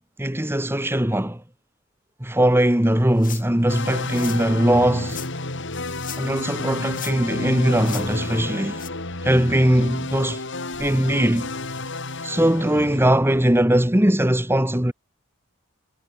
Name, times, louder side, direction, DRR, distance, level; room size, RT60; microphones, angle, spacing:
voice 1, 0.2-1.4 2.2-5.2 6.2-8.8 9.2-10.4 10.8-11.5 12.2-14.9, right 1 dB, 10° right, 1.6 m, -20 dB
sound 1, 3.2-3.6 4.1-4.4 5.1-5.3 5.9-6.4 6.7-7.4 7.8-8.1 8.8-8.9, left 11 dB, 40° left, 5.0 m, -37 dB
sound 2, 3.7-13.0, left 2 dB, 60° left, 4.7 m, -31 dB
head